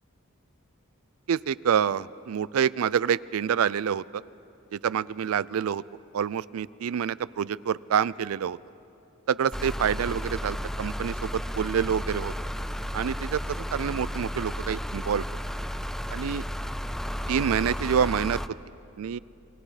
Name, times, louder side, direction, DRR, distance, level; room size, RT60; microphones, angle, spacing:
voice 1, 1.3-4.0 4.7-5.8 6.1-8.6 9.3-12.3 12.9-15.2 16.1-16.4 17.3-18.4 19.0-19.2, right 8 dB, 75° right, 20 dB, 0.4 m, -27 dB
sound 1, 9.5-18.5, equal, ahead, 0.4 m, -33 dB
28.5 x 21.0 x 4.9 m, 2.8 s
head